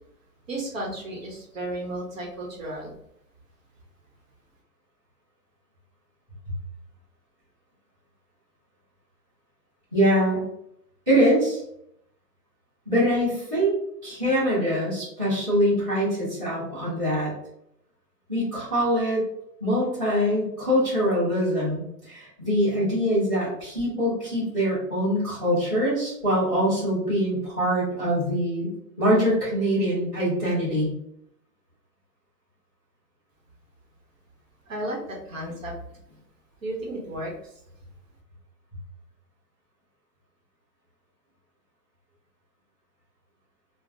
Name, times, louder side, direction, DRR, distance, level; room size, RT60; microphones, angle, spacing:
voice 1, 0.5-2.9 34.7-35.8 36.6-37.5, right 1 dB, 55° right, -1 dB, 0.9 m, -33 dB
voice 2, 9.9-10.4 11.1-11.6 12.8-13.7 14.0-17.3 18.3-19.2 19.6-28.7 29.0-30.9, equal, 5° right, -12 dB, 0.9 m, -23 dB
3.1 x 2.1 x 2.6 m, 0.74 s
hypercardioid pair, 165°, 49 cm